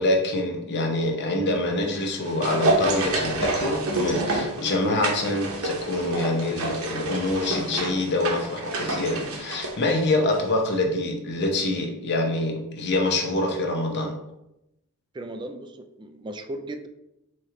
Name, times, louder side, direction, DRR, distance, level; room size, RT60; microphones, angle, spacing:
voice 1, 0.0-14.1, left 2 dB, 50° left, 2 dB, 0.7 m, -25 dB
sound 1, 1.8-10.5 10.7-10.8, right 2 dB, 70° right, 0.8 m, -28 dB
voice 2, 15.1-16.9, right 1 dB, 20° right, 6 dB, 0.3 m, -36 dB
4.4 x 3.1 x 3.7 m, 0.87 s
head